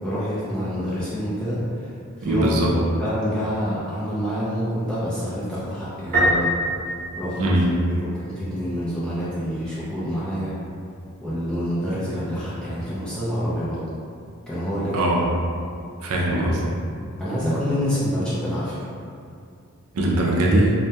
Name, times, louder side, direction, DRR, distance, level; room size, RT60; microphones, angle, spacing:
voice 1, 0.0-1.9 2.2-2.5 2.8-6.5 7.2-7.5 8.0-10.5 11.2-13.8 14.5-15.1 17.2-18.8, equal, 5° left, -11 dB, 0.4 m, -27 dB
voice 2, 2.2-2.7 7.4-7.7 14.9-15.3 16.0-16.6 19.9-20.7, right 1 dB, 90° right, -2 dB, 0.4 m, -20 dB
Piano, 6.1-8.0, equal, 45° right, 0.7 m, -23 dB
2.2 x 2.1 x 2.7 m, 2.4 s
head